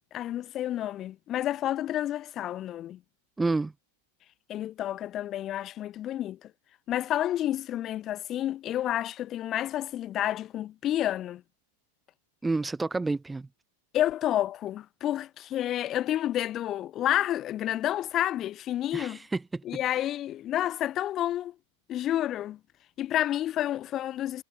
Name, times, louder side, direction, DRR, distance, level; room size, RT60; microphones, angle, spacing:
voice 1, 0.1-3.0 4.5-6.5 6.9-11.4 13.9-19.2 19.6-21.5 21.9-22.6 23.0-24.4, left 12 dB, 30° left, 5.0 m, -30 dB
voice 2, 3.4-3.7 12.4-13.5 18.9-19.6, right 3 dB, 10° right, 3.3 m, -29 dB
figure-of-eight pair, 90°, 0 cm